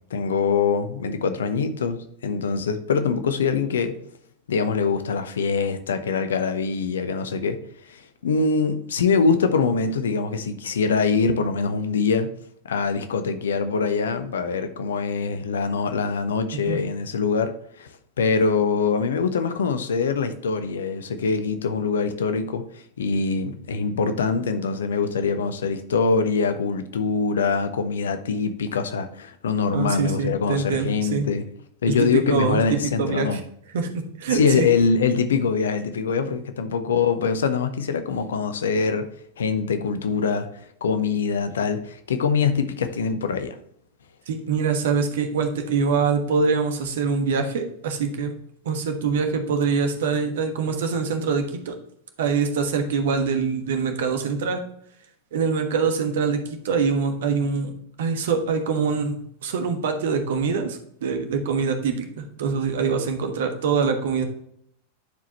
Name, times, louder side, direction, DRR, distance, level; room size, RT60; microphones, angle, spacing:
voice 1, 0.1-3.9 4.5-7.6 7.9-12.3 12.6-17.5 17.8-17.9 18.2-22.6 23.0-31.5 31.8-33.4 34.3-39.1 39.4-40.5 40.8-43.6, left 5 dB, 65° left, 9 dB, 0.8 m, -23 dB
voice 2, 29.7-31.3 32.0-33.4 33.7-34.7 44.3-48.3 48.6-51.8 52.2-54.6 55.3-57.7 58.0-64.2, right 5 dB, 60° right, 6 dB, 1.2 m, -24 dB
10.5 x 4.8 x 3.0 m, 0.68 s
figure-of-eight pair, 90°, 0 cm